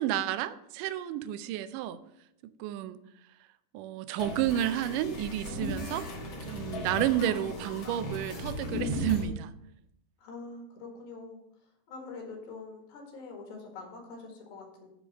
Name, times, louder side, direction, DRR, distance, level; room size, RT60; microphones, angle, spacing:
voice 1, 0.0-2.0 2.6-3.0 3.7-6.0 6.5-9.5, right 12 dB, 80° right, 13 dB, 2.0 m, -31 dB
sound 1, 4.2-9.2, left 1 dB, 55° left, 1.5 m, -36 dB
voice 2, 5.5-6.0 10.2-11.4 11.9-14.9, left 3 dB, 90° left, 1 dB, 3.7 m, -44 dB
10.0 x 3.9 x 6.3 m, 0.80 s
omnidirectional pair, 4.1 m